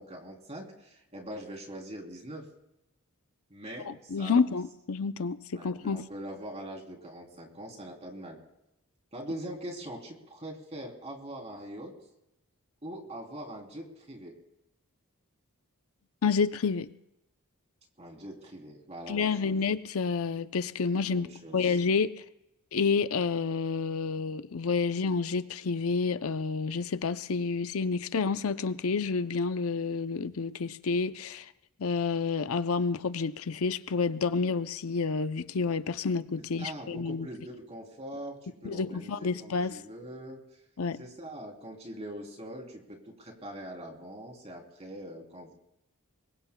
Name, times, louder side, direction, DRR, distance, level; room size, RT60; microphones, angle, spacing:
voice 1, 0.0-2.4 3.5-4.4 5.5-8.4 9.1-11.9 12.8-14.3 18.0-19.6 21.1-21.8 36.6-40.4 41.0-45.5, right 1 dB, 30° right, 1 dB, 3.3 m, -42 dB
voice 2, 3.9-6.0 16.2-16.9 19.1-21.3 21.5-22.2 22.7-31.5 31.8-37.3 38.6-39.8 40.8-41.0, left 5 dB, 65° left, 12 dB, 0.6 m, -29 dB
25.0 x 22.5 x 2.3 m, 0.88 s
head